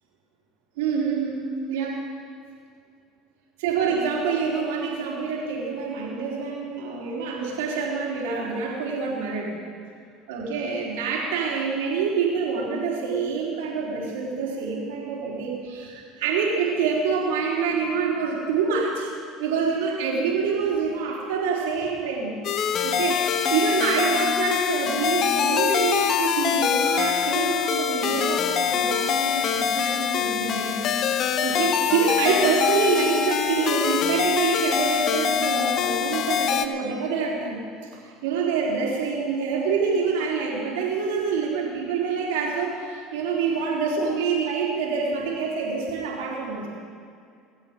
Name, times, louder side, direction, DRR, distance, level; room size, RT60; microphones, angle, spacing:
voice 1, 0.8-1.4 1.7-2.0 3.6-9.5 10.3-19.1 19.4-22.4 22.8-37.6 38.0-46.7, right 5 dB, 80° right, -3 dB, 3.8 m, -26 dB
sound 1, 22.4-36.7, left 8 dB, 50° left, 0.8 m, -24 dB
24.0 x 8.3 x 5.2 m, 2.3 s
hypercardioid pair, 85°, 0 cm